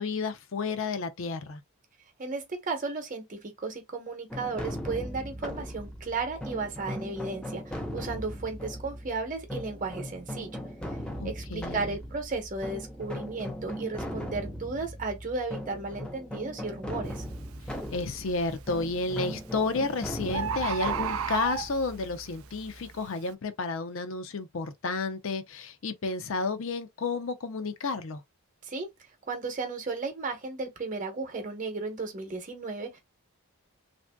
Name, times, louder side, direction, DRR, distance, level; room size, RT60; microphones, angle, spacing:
voice 1, 0.0-1.6 11.2-11.9 17.9-28.2, left 3 dB, 60° left, 0.5 m, -31 dB
voice 2, 2.2-10.5 11.2-17.2 28.6-28.9 29.3-33.0, right 3 dB, 35° right, 0.9 m, -34 dB
sound 1, 4.3-23.0, equal, 5° left, 0.5 m, -39 dB
Bird, 17.1-17.3 17.8-18.3 19.3-19.4 19.7-19.8 20.0-20.1 20.3-22.0 22.6-22.7, right 8 dB, 65° right, 0.3 m, -31 dB
3.4 x 2.6 x 2.2 m
head